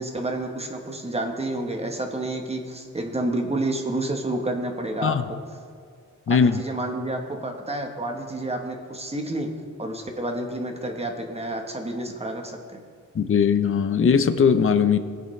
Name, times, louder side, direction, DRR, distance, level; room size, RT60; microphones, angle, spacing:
voice 1, 0.0-5.4 6.3-9.5 9.8-12.8, right 1 dB, 20° right, 3 dB, 1.0 m, -29 dB
voice 2, 6.3-6.6 13.1-15.0, left 6 dB, 40° left, 10 dB, 0.5 m, -19 dB
18.5 x 7.9 x 3.2 m, 2.2 s
wide cardioid pair, 175°, 33 cm